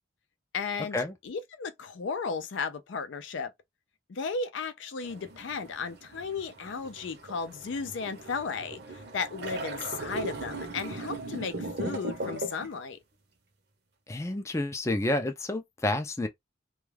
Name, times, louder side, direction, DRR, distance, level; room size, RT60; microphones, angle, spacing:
voice 1, 0.5-3.5 4.1-13.0, left 5 dB, 80° left, 0.4 m, -35 dB
sound 1, 5.0-12.7, right 2 dB, 55° right, 0.7 m, -38 dB
voice 2, 14.1-16.3, left 1 dB, 15° left, 0.3 m, -29 dB
2.2 x 2.2 x 3.2 m
head